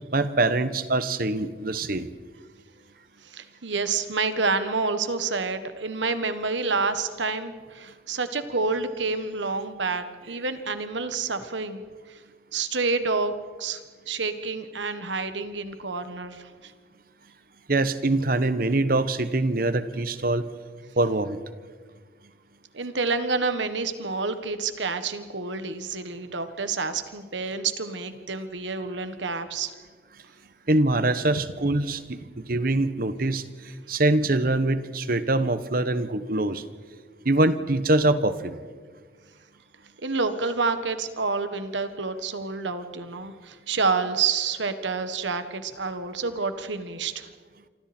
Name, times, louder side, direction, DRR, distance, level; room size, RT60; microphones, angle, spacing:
voice 1, 0.1-2.1 17.7-20.5 21.0-21.4 30.7-33.4 33.9-36.6 37.2-38.6, right 2 dB, 50° right, 13 dB, 1.1 m, -24 dB
voice 2, 3.2-11.8 12.1-12.2 12.5-13.8 14.1-16.7 22.7-29.7 40.0-47.3, right 4 dB, 80° right, 10 dB, 1.6 m, -28 dB
27.5 x 25.5 x 4.4 m, 1.5 s
head